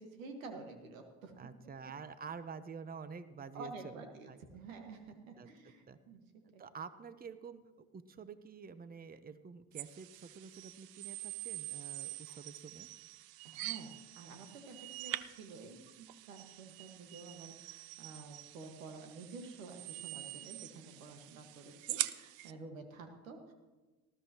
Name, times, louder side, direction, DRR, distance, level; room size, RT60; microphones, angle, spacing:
voice 1, 0.0-1.3 3.5-6.2 6.5-6.6 12.3-12.4 13.4-13.9 14.2-23.5, right 3 dB, 90° right, 5 dB, 1.7 m, -50 dB
voice 2, 1.4-4.4 5.4-5.5 5.9-6.0 6.6-12.9, right 5 dB, 25° right, 13 dB, 0.9 m, -48 dB
sound 1, 9.7-22.5, right 15 dB, 65° right, 0.7 m, -45 dB
19.0 x 13.5 x 3.0 m, 1.2 s
hypercardioid pair, 60°, 39 cm